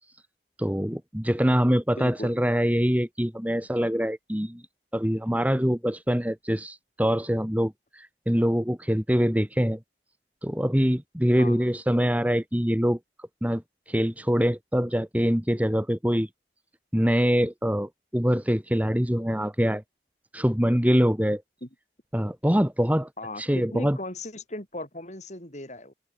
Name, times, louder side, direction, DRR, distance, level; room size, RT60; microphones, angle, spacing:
voice 1, 0.6-4.6 4.9-9.8 10.4-13.6 13.9-16.3 16.9-19.8 20.3-21.4 22.1-23.1 23.4-24.0, equal, 10° right, 2.4 m, -24 dB
voice 2, 2.0-2.4 11.4-11.7 21.6-21.7 23.2-25.9, left 1 dB, 40° left, 7.9 m, -37 dB
head